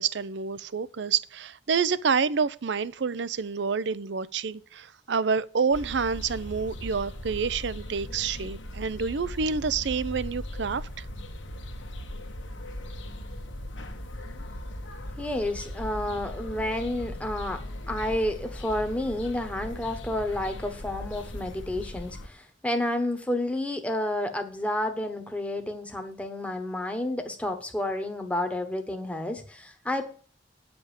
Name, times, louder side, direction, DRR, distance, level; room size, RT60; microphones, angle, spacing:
voice 1, 0.0-11.1, right 5 dB, 70° right, 0.5 m, -28 dB
sound 1, 5.7-22.3, left 1 dB, 80° left, 1.3 m, -39 dB
voice 2, 15.2-17.6 17.9-30.0, left 1 dB, 5° left, 1.1 m, -30 dB
9.6 x 5.2 x 7.3 m
head